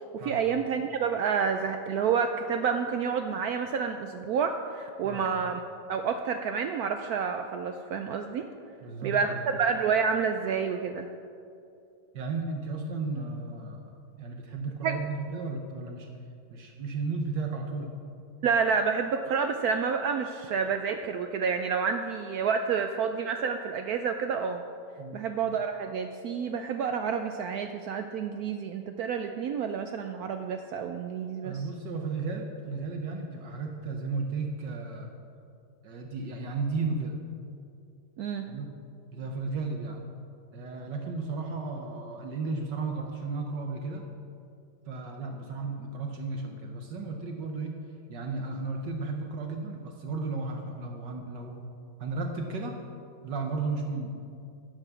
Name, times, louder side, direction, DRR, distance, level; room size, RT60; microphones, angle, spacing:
voice 1, 0.1-5.6 5.9-8.5 9.0-11.1 14.8-15.0 18.4-24.6 25.1-31.6 38.2-38.5, right 6 dB, 80° right, 6 dB, 0.8 m, -29 dB
voice 2, 8.8-9.4 12.1-16.1 16.5-17.9 25.0-25.3 31.4-35.1 35.8-37.2 38.5-38.7 39.1-40.0 40.5-44.0 44.9-47.7 48.1-51.6 52.0-52.8 53.2-54.2, right 3 dB, 65° right, 2 dB, 1.4 m, -34 dB
11.0 x 7.1 x 6.8 m, 2.5 s
omnidirectional pair, 2.1 m